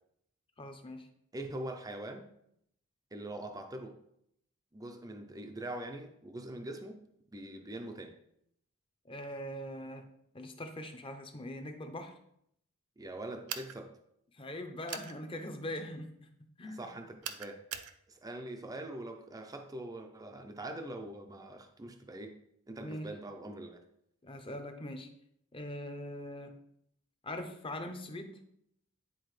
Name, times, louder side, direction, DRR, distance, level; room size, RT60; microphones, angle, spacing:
voice 1, 0.6-1.1 9.1-10.1 10.3-12.1 14.3-16.3 16.6-16.9 22.8-23.1 24.2-25.1 25.5-26.5 27.2-28.4, left 1 dB, 25° left, 6 dB, 0.7 m, -42 dB
voice 2, 1.3-2.3 3.1-4.0 4.7-7.0 7.3-8.2 13.0-14.0 16.6-17.6 18.1-22.4 22.7-23.8, right 1 dB, 15° right, 4 dB, 0.5 m, -43 dB
sound 1, 13.5-13.8 14.9-15.1 17.2-17.9, right 9 dB, 85° right, 0.6 m, -40 dB
10.0 x 4.2 x 3.2 m, 0.72 s
head